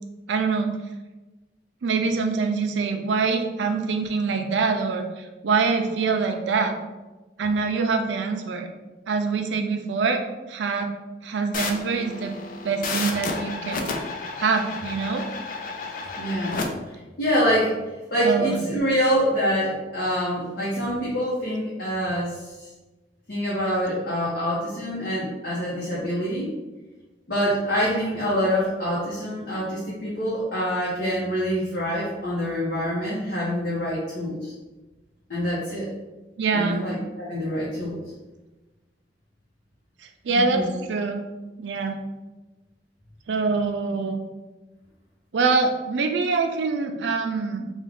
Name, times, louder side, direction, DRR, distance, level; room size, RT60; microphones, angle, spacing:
voice 1, 0.3-0.7 1.8-6.8 7.4-8.7 9.1-10.2 10.5-10.9 11.2-12.4 12.6-14.0 14.4-15.3 18.2-18.6 36.4-36.8 40.2-41.2 41.6-42.0 43.3-44.2 45.3-47.7, right 4 dB, 90° right, 5 dB, 0.4 m, -24 dB
sound 1, 11.5-16.7, left 4 dB, 50° left, 0.4 m, -32 dB
voice 2, 16.2-16.6 16.9-17.8 18.1-22.7 23.3-26.5 27.3-34.5 35.3-35.9 36.5-38.0 40.3-40.7, equal, 65° left, -8 dB, 0.9 m, -26 dB
3.5 x 2.3 x 3.5 m, 1.1 s
head